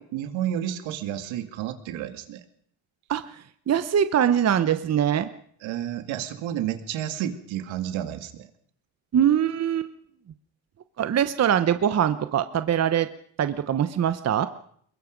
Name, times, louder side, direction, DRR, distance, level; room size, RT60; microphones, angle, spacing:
voice 1, 0.1-2.4 5.6-8.5, right 11 dB, 75° right, 8 dB, 2.4 m, -31 dB
voice 2, 3.7-5.3 9.1-9.9 11.0-13.1 13.4-14.5, right 9 dB, 35° right, 11 dB, 1.0 m, -22 dB
23.0 x 21.5 x 5.3 m, 0.62 s
cardioid pair, 120°, 46 cm